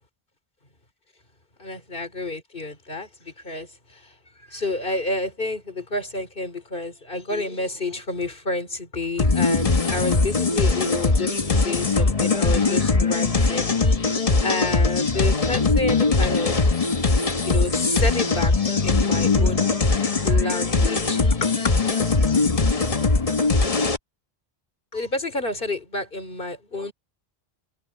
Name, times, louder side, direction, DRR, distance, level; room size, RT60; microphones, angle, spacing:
voice 1, 1.6-13.7 14.4-16.6 17.4-18.5 18.8-19.7 20.1-21.7 24.9-26.9, left 2 dB, 55° left, 3.4 m, -30 dB
sound 1, 9.2-24.0, left 3 dB, 35° left, 1.2 m, -21 dB
omnidirectional pair, 1.0 m